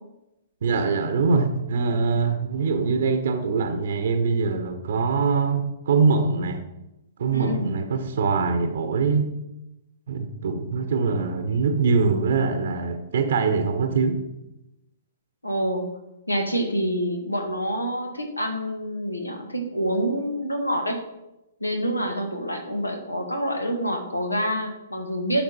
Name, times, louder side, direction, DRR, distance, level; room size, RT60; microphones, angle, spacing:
voice 1, 0.6-6.6 7.2-9.3 10.1-14.2, right 4 dB, 60° right, 7 dB, 0.9 m, -23 dB
voice 2, 7.3-7.7 15.4-15.8 16.3-21.0 21.6-25.4, equal, 85° left, 4 dB, 1.6 m, -27 dB
10.0 x 5.8 x 4.3 m, 0.92 s
figure-of-eight pair, 115°, 0 cm